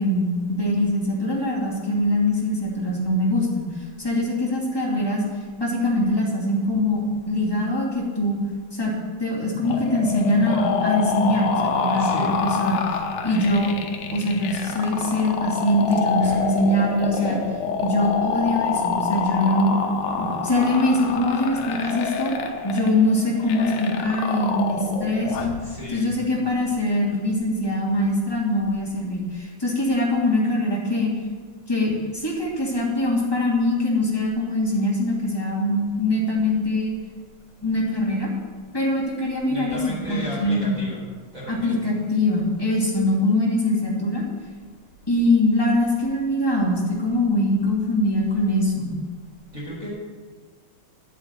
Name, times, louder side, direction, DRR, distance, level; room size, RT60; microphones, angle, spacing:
voice 1, 0.0-3.7 4.0-5.2 5.6-7.0 7.3-8.4 8.7-8.9 9.2-13.8 14.1-17.4 17.8-19.7 20.2-22.3 22.6-25.5 25.9-31.1 31.7-36.9 37.6-38.3 38.7-40.7 41.5-44.2 45.1-49.0, left 1 dB, 10° left, -4 dB, 1.4 m, -23 dB
sound 1, 9.7-25.6, left 5 dB, 75° left, 3.0 m, -27 dB
voice 2, 12.0-12.3 16.2-16.5 17.1-17.4 25.7-26.4 39.5-41.0 41.3-41.7 49.5-49.9, equal, 20° right, -7 dB, 4.7 m, -34 dB
10.0 x 7.7 x 9.0 m, 1.5 s
omnidirectional pair, 4.7 m